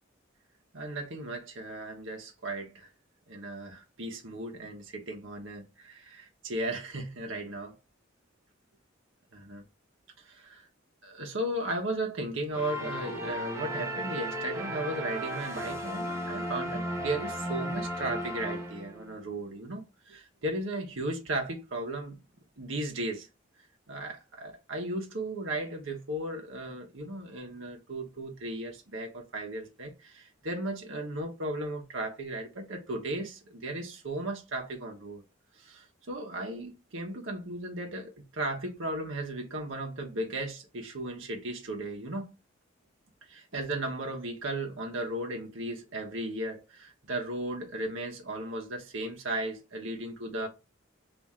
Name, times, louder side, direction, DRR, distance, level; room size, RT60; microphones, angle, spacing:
voice 1, 0.7-2.9 3.3-7.7 9.3-9.6 10.3-10.6 11.0-22.2 22.6-23.3 23.9-35.2 35.6-42.3 43.3-50.5, right 1 dB, 80° right, 1.1 m, -36 dB
sound 1, 12.5-19.1, equal, 15° right, 0.8 m, -35 dB
3.7 x 2.8 x 4.2 m
head